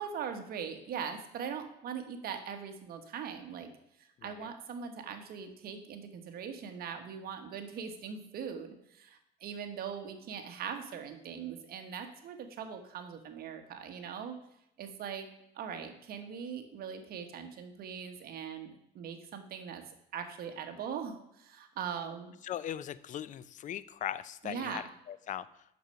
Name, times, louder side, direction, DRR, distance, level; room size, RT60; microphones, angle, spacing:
voice 1, 0.0-3.7 4.0-14.4 14.8-15.3 15.5-19.8 20.1-22.3 24.4-24.8, right 7 dB, 65° right, 6 dB, 1.3 m, -41 dB
voice 2, 4.2-4.5 22.4-25.6, left 10 dB, 50° left, 16 dB, 0.5 m, -40 dB
6.8 x 6.4 x 5.7 m, 0.80 s
cardioid pair, 110°, 17 cm